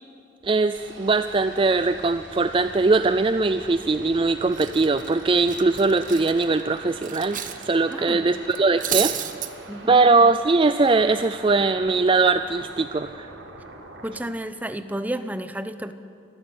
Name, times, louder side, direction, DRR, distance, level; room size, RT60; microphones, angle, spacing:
voice 1, 0.4-7.4 7.7-9.1 9.9-13.3, right 3 dB, 25° right, 11 dB, 0.4 m, -21 dB
sound 1, 0.7-14.2, right 2 dB, 80° right, 3.7 m, -43 dB
Cutlery silverware, 3.9-4.2 4.5-7.6 7.9-8.1 8.5-9.5, right 10 dB, 45° right, 1.1 m, -30 dB
voice 2, 7.9-8.3 9.7-10.0 14.0-15.9, right 1 dB, 10° right, 10 dB, 0.8 m, -31 dB
25.0 x 14.5 x 8.7 m, 2.7 s
head